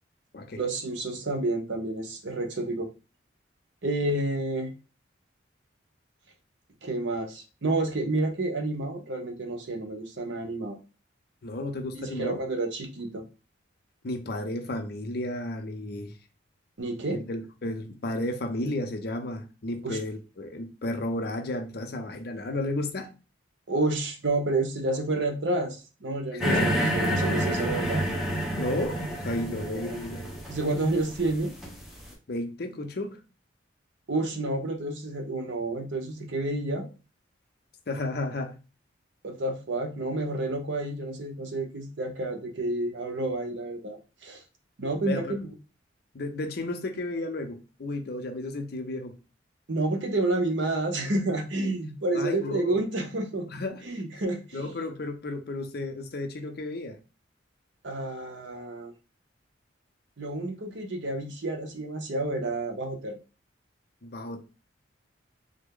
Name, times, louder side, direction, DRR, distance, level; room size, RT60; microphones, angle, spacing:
voice 1, 0.6-2.9 3.8-4.7 6.8-10.8 11.9-13.2 16.8-17.2 19.8-20.0 23.7-28.0 29.7-30.0 30.5-31.5 34.1-36.9 39.2-44.4 44.8-45.5 49.7-53.5 53.8-54.7 57.8-58.9 60.2-63.2, right 2 dB, 65° right, 0.7 m, -30 dB
voice 2, 11.4-12.4 14.0-16.2 17.1-23.1 26.3-26.8 28.6-30.3 32.3-33.2 37.9-38.6 45.0-45.4 46.1-49.1 52.1-52.8 53.5-53.8 54.5-57.0 64.0-64.4, left 1 dB, 55° left, 0.6 m, -33 dB
sound 1, 26.4-32.0, equal, ahead, 0.7 m, -29 dB
3.3 x 2.1 x 3.6 m
head